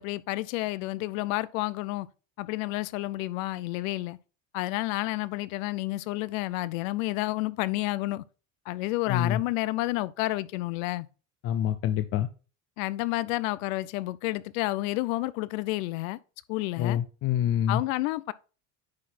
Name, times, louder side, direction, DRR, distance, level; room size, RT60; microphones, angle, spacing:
voice 1, 0.0-2.1 2.4-4.2 4.5-8.2 8.7-11.1 12.8-16.2 16.5-17.0 17.7-18.3, left 19 dB, 80° left, 0.6 m, -30 dB
voice 2, 9.1-9.4 11.4-12.3 16.8-17.8, left 10 dB, 35° left, 0.4 m, -26 dB
9.7 x 4.2 x 4.2 m
cardioid pair, 150°, 40 cm